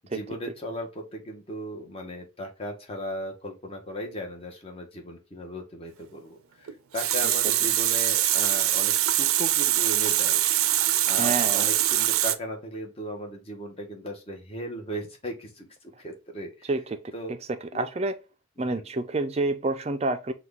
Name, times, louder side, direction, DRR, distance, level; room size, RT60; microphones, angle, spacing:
voice 1, 0.0-10.4 11.0-16.7 17.1-17.3 17.7-17.9 18.7-18.8, equal, 25° left, 1.0 m, -37 dB
Water tap faucet, 6.7-12.4, right 13 dB, 85° right, 0.5 m, -23 dB
voice 2, 11.2-11.7 16.7-17.0 17.3-17.4 17.7-18.2 18.6-20.3, right 2 dB, 30° right, 0.4 m, -28 dB
5.9 x 2.3 x 3.4 m
head